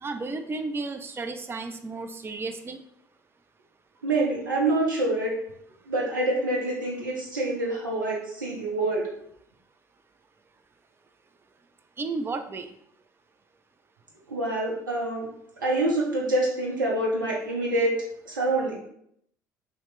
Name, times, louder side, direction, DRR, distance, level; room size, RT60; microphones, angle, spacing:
voice 1, 0.0-2.8 12.0-12.7, right 3 dB, 20° right, 7 dB, 0.4 m, -33 dB
voice 2, 4.0-5.3 5.9-9.1 14.3-15.3 15.6-17.9 18.3-18.8, right 2 dB, 85° right, -3 dB, 0.6 m, -26 dB
2.9 x 2.1 x 4.1 m, 0.72 s
figure-of-eight pair, 60°, 10 cm